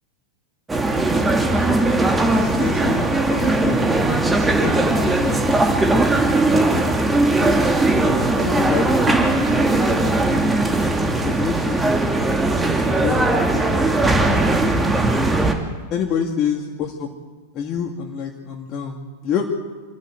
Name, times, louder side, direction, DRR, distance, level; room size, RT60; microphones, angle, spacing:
sound 1, 0.7-15.5, right 2 dB, 10° right, 2.8 m, -19 dB
voice 1, 2.2-3.8 4.6-6.0 6.5-7.7 8.4-9.5 11.2-11.9 12.9-13.3 13.5-14.5 15.9-17.1 17.5-19.5, left 7 dB, 35° left, 0 dB, 2.3 m, -28 dB
26.5 x 14.5 x 9.3 m, 1.3 s
figure-of-eight pair, 90°, 0 cm